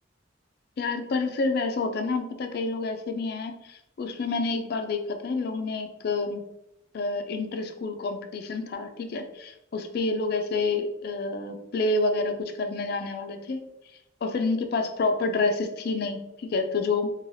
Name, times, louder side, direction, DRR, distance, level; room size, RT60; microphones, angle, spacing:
voice 1, 0.8-6.4 6.9-13.6 14.2-17.1, left 3 dB, 55° left, 6 dB, 0.3 m, -28 dB
3.1 x 2.3 x 2.6 m, 0.85 s
head